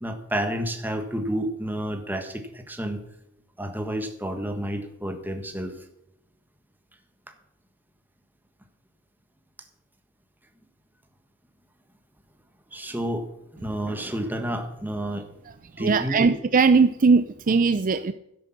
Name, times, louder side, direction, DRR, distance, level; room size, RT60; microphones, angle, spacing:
voice 1, 0.0-3.0 3.6-5.7 12.7-13.3 13.6-15.3 15.8-16.3, right 1 dB, 10° right, 6 dB, 1.5 m, -30 dB
voice 2, 15.7-18.1, right 4 dB, 40° right, 12 dB, 0.4 m, -20 dB
12.5 x 10.5 x 5.9 m, 0.79 s
head